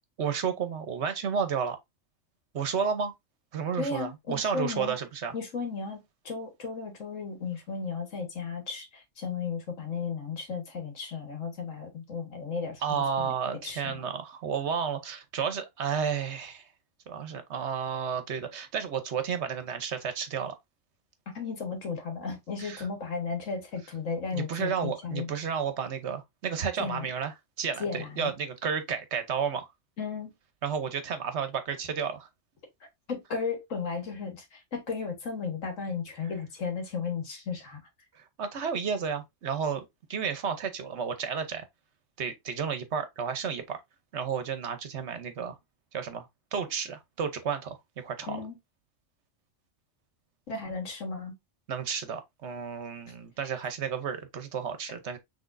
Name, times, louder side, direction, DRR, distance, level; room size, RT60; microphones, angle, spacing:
voice 1, 0.2-1.8 2.5-3.1 3.5-5.3 12.8-16.7 17.1-20.5 22.6-22.8 24.3-29.7 30.6-32.3 38.1-41.7 42.2-43.8 44.1-45.6 45.9-48.4 51.7-55.2, right 6 dB, 65° right, 1.1 m, -32 dB
voice 2, 3.8-5.0 5.3-13.3 13.6-14.0 21.3-25.4 26.8-27.1 27.8-28.3 30.0-30.3 33.1-37.8 48.3-48.6 50.5-51.3, left 5 dB, 85° left, 1.8 m, -35 dB
6.0 x 3.4 x 2.6 m
omnidirectional pair, 1.3 m